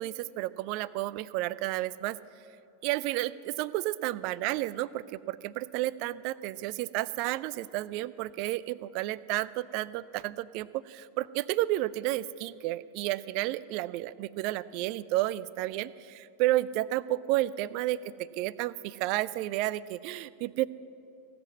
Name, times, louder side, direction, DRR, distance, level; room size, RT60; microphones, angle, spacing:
voice 1, 0.0-2.2 2.8-18.0 18.4-20.7, right 16 dB, 45° right, 19 dB, 0.3 m, -31 dB
16.5 x 7.8 x 7.4 m, 2.6 s
figure-of-eight pair, 90°, 0 cm